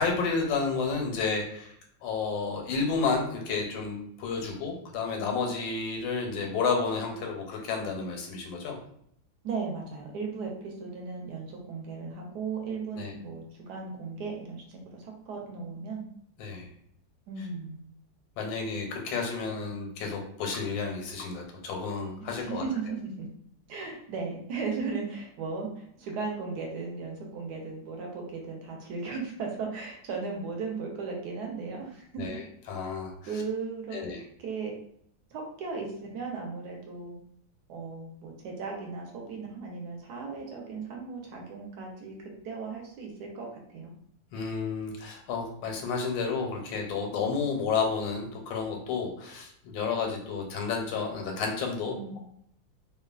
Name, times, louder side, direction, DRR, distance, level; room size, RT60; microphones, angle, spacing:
voice 1, 0.0-1.7 2.0-8.8 13.0-13.1 16.4-16.7 18.4-22.6 32.2-33.3 33.9-34.2 44.3-52.2, left 4 dB, 85° left, 1 dB, 1.4 m, -31 dB
voice 2, 9.4-16.0 17.3-17.8 22.2-23.3 23.7-32.4 33.3-34.0 34.4-34.7 35.3-35.9 36.1-37.2 37.7-43.5 43.7-43.9 51.8-52.2, right 4 dB, 70° right, 0 dB, 1.1 m, -36 dB
3.1 x 2.2 x 2.3 m, 0.68 s
omnidirectional pair, 2.0 m